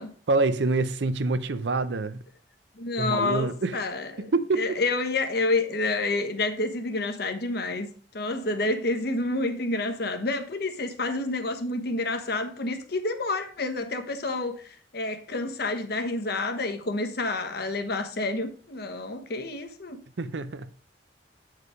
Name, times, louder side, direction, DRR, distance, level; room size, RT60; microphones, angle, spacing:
voice 1, 0.3-2.2 3.0-3.8 4.2-4.8 20.2-20.7, right 3 dB, 80° right, 0.6 m, -26 dB
voice 2, 2.8-4.3 4.6-7.9 8.1-20.0, left 2 dB, 65° left, 1.1 m, -29 dB
8.2 x 4.8 x 4.9 m
head